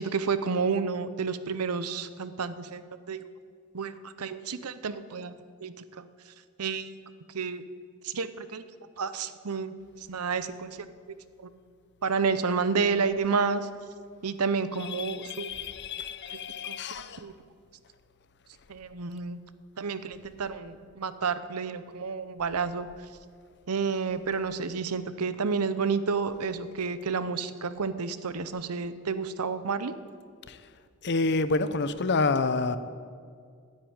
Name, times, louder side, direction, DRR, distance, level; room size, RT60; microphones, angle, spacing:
voice 1, 0.0-2.8 3.1-3.3 3.7-6.1 6.6-6.9 7.3-7.6 8.0-8.6 9.0-10.9 11.4-11.5 12.0-13.7 14.2-15.5 16.6-16.8 17.2-17.3 18.7-19.4 19.8-22.9 23.7-29.9, right 5 dB, 90° right, 13 dB, 0.7 m, -30 dB
voice 2, 15.3-17.2 31.0-32.8, left 3 dB, 50° left, 13 dB, 0.7 m, -28 dB
12.0 x 9.8 x 8.8 m, 2.1 s
head